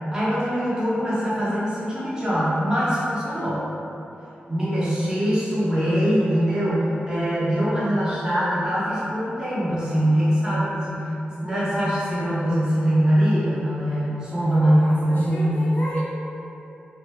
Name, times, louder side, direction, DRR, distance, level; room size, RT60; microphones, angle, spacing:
voice 1, 0.1-3.6 4.5-11.1 11.4-15.6, equal, 20° right, -10 dB, 0.8 m, -22 dB
voice 2, 14.3-16.0, equal, 50° left, -7 dB, 0.5 m, -35 dB
3.0 x 2.2 x 3.2 m, 2.9 s
wide cardioid pair, 145°, 4 cm